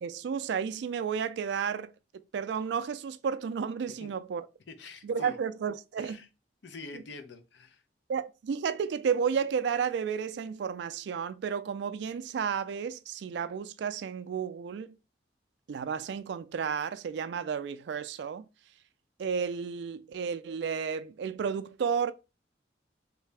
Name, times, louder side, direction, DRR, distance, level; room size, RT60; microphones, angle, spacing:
voice 1, 0.0-1.9 2.3-4.4 5.0-6.2 8.1-15.0 15.7-18.4 19.2-22.1, right 6 dB, 70° right, 0.3 m, -32 dB
voice 2, 4.7-5.4 6.0-6.3 6.6-7.8, left 3 dB, 70° left, 0.6 m, -46 dB
3.2 x 2.7 x 3.3 m
head